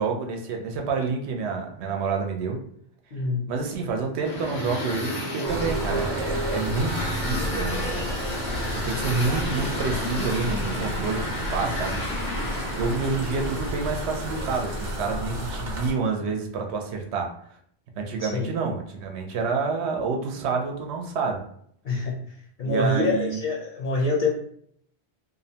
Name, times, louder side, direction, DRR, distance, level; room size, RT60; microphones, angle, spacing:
voice 1, 0.0-2.6 3.5-8.4 8.7-12.0 12.3-17.3 18.0-21.4 22.6-23.4, right 4 dB, 90° right, 2 dB, 0.8 m, -28 dB
voice 2, 3.1-3.5 18.2-18.5 21.8-22.2 22.6-24.3, left 3 dB, 60° left, -4 dB, 0.6 m, -25 dB
sound 1, 4.2-14.9, left 1 dB, 85° left, 1.2 m, -32 dB
sound 2, 5.5-15.9, equal, 55° right, 0.7 m, -32 dB
2.6 x 2.1 x 2.7 m, 0.65 s
omnidirectional pair, 1.1 m